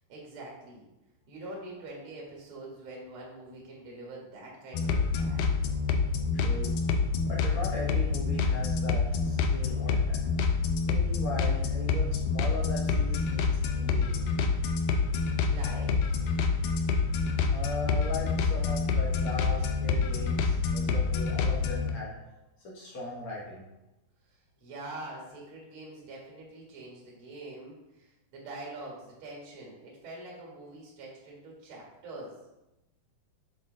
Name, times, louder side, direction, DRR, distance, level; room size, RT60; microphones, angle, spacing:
voice 1, 0.1-0.8 1.3-5.4 15.5-16.0 24.6-32.3, right 2 dB, 50° right, -3 dB, 1.7 m, -44 dB
sound 1, 4.7-21.9, left 4 dB, 80° left, 2.2 m, -27 dB
voice 2, 6.3-6.8 7.2-10.2 10.8-14.3 17.5-22.2 22.6-23.7, left 1 dB, 60° left, -5 dB, 1.5 m, -38 dB
7.2 x 4.0 x 3.8 m, 0.96 s
omnidirectional pair, 4.2 m